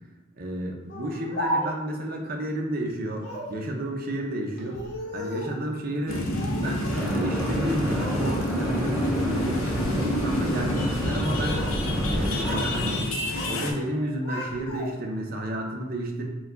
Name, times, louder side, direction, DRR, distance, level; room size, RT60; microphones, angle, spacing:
voice 1, 0.3-4.8 5.1-6.3 6.6-11.6 12.0-13.1 13.4-16.3, right 1 dB, 45° right, 1 dB, 0.6 m, -31 dB
Speech, 0.9-2.0 3.2-3.6 4.6-5.6 6.3-7.1 7.4-8.2 8.6-9.0 9.6-9.9 11.1-11.8 12.1-12.7 13.0-13.6 13.9-15.1, equal, 50° left, 0.9 m, -35 dB
sound 1, 6.1-13.7, left 1 dB, 75° left, 0.6 m, -28 dB
sound 2, 6.9-13.0, equal, 5° right, 1.2 m, -31 dB
4.4 x 2.3 x 3.9 m, 1.1 s
head